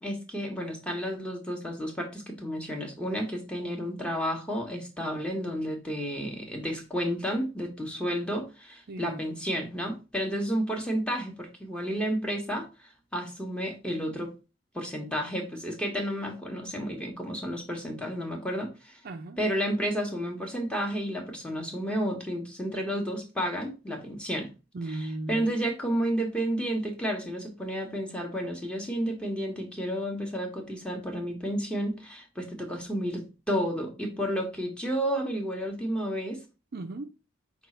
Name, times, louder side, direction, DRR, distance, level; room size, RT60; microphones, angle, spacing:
voice 1, 0.0-14.3 14.7-19.0 19.4-24.5 25.3-36.4, equal, 5° left, 0.9 m, -31 dB
voice 2, 8.9-9.2 19.0-19.4 24.7-25.6 36.7-37.1, right 2 dB, 45° right, 0.4 m, -36 dB
5.3 x 2.4 x 4.1 m
head